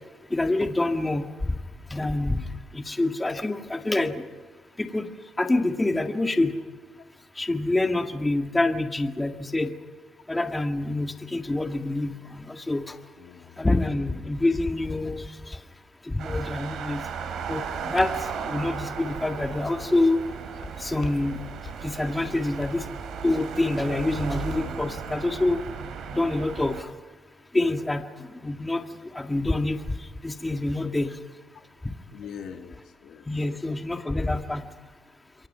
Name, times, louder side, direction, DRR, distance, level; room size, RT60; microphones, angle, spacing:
voice 1, 0.3-1.3 1.9-2.4 2.7-4.2 4.8-5.1 5.4-6.6 7.4-9.7 10.3-13.0 13.6-15.6 16.1-17.1 17.5-20.2 20.8-21.4 21.8-22.8 23.2-25.6 26.1-26.9 27.5-28.0 28.4-28.8 29.1-29.8 30.2-31.1 33.3-34.7, left 2 dB, 15° left, 5 dB, 2.0 m, -26 dB
voice 2, 13.2-13.7 20.6-20.7 26.0-26.1 32.1-34.0, left 7 dB, 75° left, 5 dB, 2.0 m, -44 dB
sound 1, 16.2-26.8, right 7 dB, 75° right, 3.1 m, -35 dB
sound 2, 17.8-25.0, left 6 dB, 55° left, 5.0 m, -48 dB
28.0 x 23.0 x 5.8 m, 1.4 s
cardioid pair, 90°, 0 cm